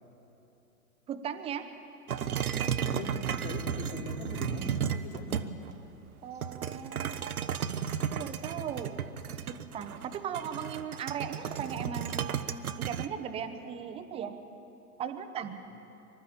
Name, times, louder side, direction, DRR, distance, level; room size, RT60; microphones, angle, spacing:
voice 1, 1.1-1.7 6.2-7.1 8.1-8.9 9.5-12.2 12.8-14.3 15.0-15.5, right 8 dB, 10° right, 9 dB, 0.8 m, -37 dB
sound 1, 2.1-5.8 6.4-13.1, right 8 dB, 65° right, 1.0 m, -34 dB
voice 2, 2.8-5.5, left 2 dB, 55° left, -2 dB, 4.4 m, -40 dB
25.0 x 12.5 x 8.7 m, 3.0 s
figure-of-eight pair, 110°, 47 cm